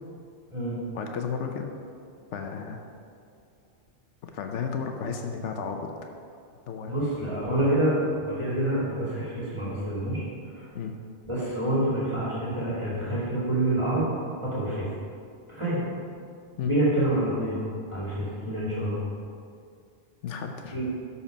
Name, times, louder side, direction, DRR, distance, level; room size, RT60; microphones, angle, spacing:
voice 1, 0.9-1.7 2.3-2.8 4.2-6.1 6.7-6.9 10.7-11.0 16.6-16.8 20.2-20.8, left 6 dB, 85° left, 3 dB, 1.0 m, -33 dB
voice 2, 6.9-10.2 10.5-10.6 11.3-14.0 14.4-14.9 15.5-15.8 16.7-17.6 17.9-19.0 20.7-20.9, right 1 dB, 25° right, -9 dB, 2.3 m, -27 dB
12.5 x 4.2 x 5.2 m, 2.3 s
omnidirectional pair, 1.2 m